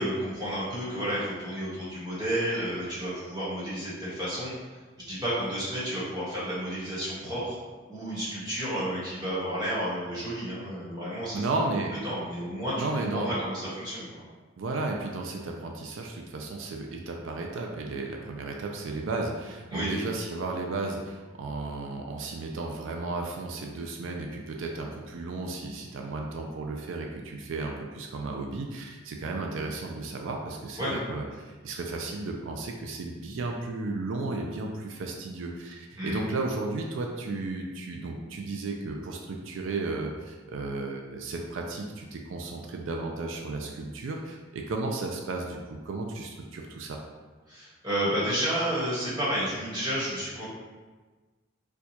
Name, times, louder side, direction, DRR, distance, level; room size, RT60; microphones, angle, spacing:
voice 1, 0.0-4.5 5.1-7.6 7.9-11.4 12.0-12.7 13.1-14.1 19.7-19.9 30.8-30.9 36.0-36.2 47.5-50.5, equal, 20° right, -9 dB, 1.2 m, -31 dB
voice 2, 11.3-12.0 12.8-13.3 14.6-47.0, right 3 dB, 75° right, 1 dB, 0.4 m, -34 dB
4.4 x 2.3 x 2.7 m, 1.3 s
head